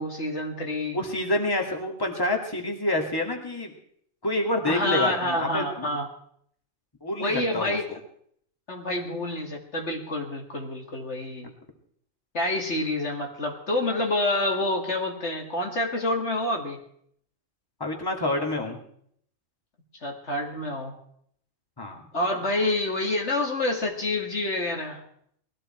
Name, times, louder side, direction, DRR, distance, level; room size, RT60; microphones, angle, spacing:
voice 1, 0.0-1.0 4.6-6.1 7.2-7.9 8.7-11.5 12.3-16.8 20.0-20.9 22.1-25.0, left 1 dB, 55° left, 1 dB, 2.4 m, -28 dB
voice 2, 0.9-3.7 4.2-6.0 7.0-8.0 17.8-18.8 21.8-22.0, left 1 dB, 15° left, 1 dB, 2.4 m, -28 dB
20.5 x 15.0 x 4.5 m, 0.68 s
omnidirectional pair, 1.4 m